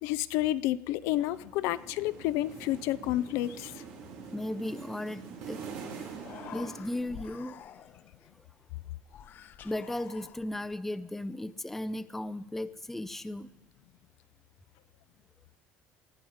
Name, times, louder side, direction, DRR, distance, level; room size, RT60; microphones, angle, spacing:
voice 1, 0.0-3.8, left 15 dB, 80° left, 14 dB, 0.5 m, -30 dB
sound 1, 1.0-7.5, right 6 dB, 90° right, 3.0 m, -45 dB
voice 2, 4.3-5.6 6.5-7.6 9.6-13.5, left 1 dB, 5° left, 13 dB, 0.5 m, -36 dB
Human voice, 6.1-8.2 9.1-10.7, left 9 dB, 45° left, 0.7 m, -48 dB
19.0 x 11.5 x 5.0 m, 0.94 s
cardioid pair, 140°, 5 cm